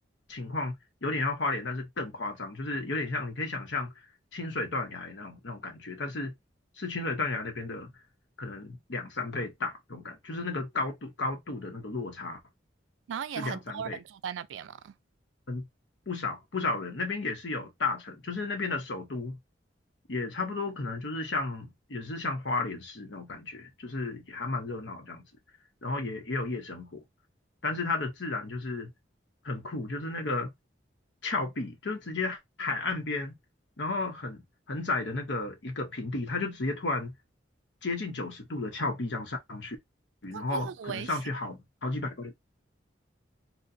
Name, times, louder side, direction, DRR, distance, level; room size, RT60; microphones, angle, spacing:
voice 1, 0.3-0.7 1.0-4.1 4.3-6.3 6.8-7.9 8.4-12.4 13.4-14.0 15.5-15.6 16.1-19.4 20.1-25.2 25.8-27.0 27.6-28.9 29.4-30.5 31.2-33.3 33.8-34.4 34.7-37.1 37.8-39.8 40.2-42.3, left 3 dB, 70° left, 0.8 m, -33 dB
voice 2, 13.1-14.9 40.3-41.2, right 7 dB, 85° right, 0.3 m, -37 dB
4.0 x 2.2 x 2.6 m
head